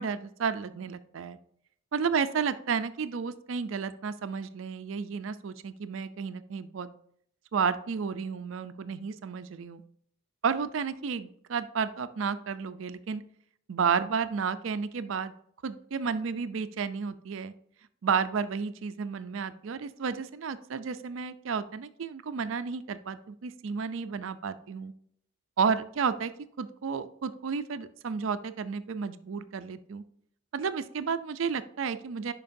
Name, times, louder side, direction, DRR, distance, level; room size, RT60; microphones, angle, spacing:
voice 1, 0.0-1.4 1.9-6.9 7.5-9.8 10.4-13.2 13.7-15.3 15.6-17.5 18.0-24.9 25.6-26.3 26.6-30.0 30.5-32.3, right 6 dB, 70° right, 12 dB, 0.4 m, -32 dB
11.0 x 4.6 x 2.6 m, 0.67 s
head